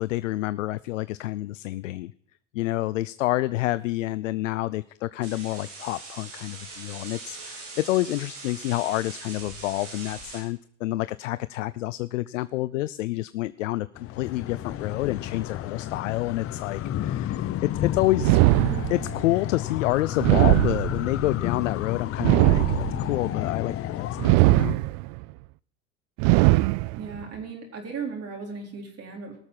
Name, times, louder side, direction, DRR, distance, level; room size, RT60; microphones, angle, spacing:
voice 1, 0.0-2.1 2.5-18.4 18.9-24.8, left 17 dB, 90° left, 17 dB, 0.5 m, -28 dB
sound 1, 5.2-10.4, right 3 dB, 85° right, 4.9 m, -41 dB
sound 2, 14.0-24.3, left 12 dB, 40° left, 0.7 m, -31 dB
sound 3, 18.2-19.3 20.2-21.3 22.2-23.2 24.2-25.2 26.2-27.2, right 22 dB, 60° right, 0.5 m, -20 dB
voice 2, 27.0-29.4, right 5 dB, 40° right, 1 dB, 4.1 m, -36 dB
19.0 x 6.7 x 5.5 m, 0.65 s
hypercardioid pair, 85°, 37 cm